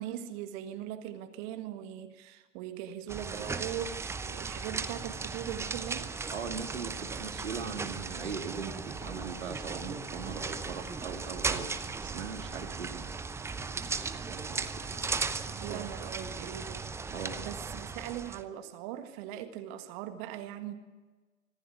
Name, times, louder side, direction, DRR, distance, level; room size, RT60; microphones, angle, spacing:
voice 1, 0.0-3.9 4.2-6.1 15.5-20.7, right 11 dB, 35° right, 8 dB, 1.9 m, -40 dB
sound 1, 3.1-18.4, right 4 dB, 5° right, 0.8 m, -37 dB
voice 2, 3.3-3.6 6.3-13.1 13.8-13.9 14.1-14.7 15.7-15.9 17.1-17.4, right 6 dB, 70° right, 2 dB, 2.5 m, -40 dB
25.0 x 15.0 x 9.3 m, 1.3 s
figure-of-eight pair, 105°, 39 cm